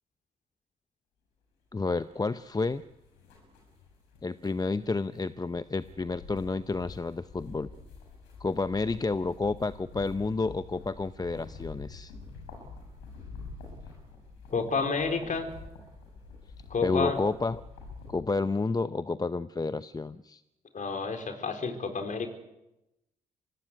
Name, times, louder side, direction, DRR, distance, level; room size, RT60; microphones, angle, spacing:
voice 1, 1.7-2.8 4.2-7.7 8.4-12.1 16.8-17.6 18.1-20.4, left 3 dB, 20° left, 14 dB, 0.8 m, -30 dB
sound 1, 2.0-18.2, left 4 dB, 75° left, 7.2 m, -47 dB
voice 2, 14.5-15.5 16.7-17.2 20.7-22.3, left 4 dB, 45° left, 6 dB, 4.4 m, -30 dB
25.0 x 17.0 x 9.7 m, 0.94 s
hypercardioid pair, 45°, 19 cm